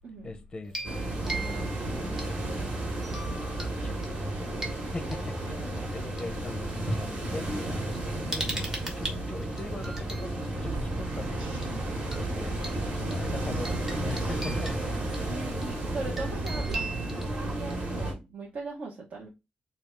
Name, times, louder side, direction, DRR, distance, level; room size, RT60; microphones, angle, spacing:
voice 1, 0.2-0.9 1.2-3.2 3.7-5.6 5.9-7.8 8.3-11.6 12.1-15.3, left 3 dB, 25° left, 0.5 m, -42 dB
sound 1, 0.6-2.6 3.0-3.7 4.0-6.2 7.1-7.2 7.5-10.3 11.6-11.8 12.1-12.2 12.6-18.0, right 2 dB, 20° right, 0.9 m, -40 dB
sound 2, 0.8-18.1, right 1 dB, 40° right, 1.2 m, -33 dB
sound 3, 10.5-16.9, right 2 dB, 80° right, 1.4 m, -39 dB
voice 2, 15.3-19.3, right 3 dB, 60° right, 0.9 m, -39 dB
3.4 x 2.3 x 4.3 m
wide cardioid pair, 180°, 3 cm